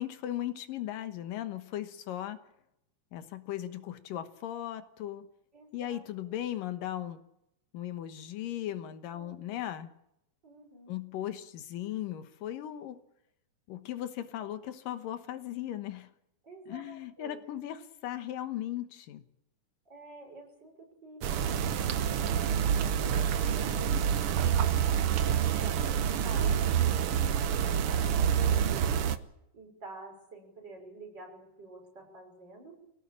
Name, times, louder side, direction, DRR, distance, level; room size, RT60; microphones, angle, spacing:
voice 1, 0.0-2.4 3.1-5.3 5.7-7.2 7.7-9.9 10.9-13.0 13.7-16.1 16.7-19.2, left 12 dB, 85° left, 10 dB, 2.9 m, -37 dB
voice 2, 5.5-6.4 9.1-9.7 10.4-10.9 16.4-17.4 19.9-24.3 24.8-29.1 29.5-32.7, right 2 dB, 30° right, 1 dB, 6.6 m, -49 dB
sound 1, 21.2-29.2, right 8 dB, 70° right, 1.3 m, -27 dB
25.0 x 17.5 x 8.7 m, 0.81 s
omnidirectional pair, 3.8 m